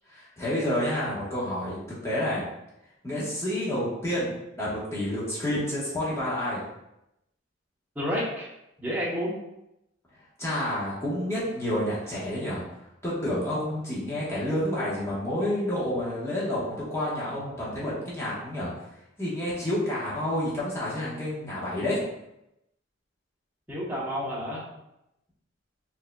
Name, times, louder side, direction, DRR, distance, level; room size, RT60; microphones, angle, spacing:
voice 1, 0.1-2.4 3.0-6.6 10.4-12.6 13.0-18.7 19.2-22.0, left 1 dB, 15° left, -8 dB, 1.1 m, -29 dB
voice 2, 7.9-8.5 8.8-9.4 23.7-24.6, equal, 10° right, -6 dB, 0.8 m, -30 dB
4.7 x 2.7 x 2.2 m, 0.86 s
head